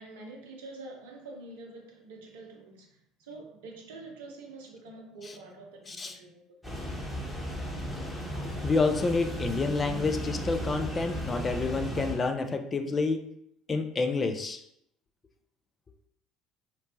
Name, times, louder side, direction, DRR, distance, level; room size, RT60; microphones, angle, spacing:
voice 1, 0.0-6.8, right 2 dB, 70° right, 1 dB, 0.5 m, -46 dB
sound 1, 6.6-12.1, right 1 dB, 10° left, 0.9 m, -35 dB
voice 2, 8.6-13.2 13.7-14.6, left 4 dB, 30° left, 6 dB, 0.3 m, -28 dB
2.9 x 2.1 x 2.8 m, 0.74 s
figure-of-eight pair, 60°, 0 cm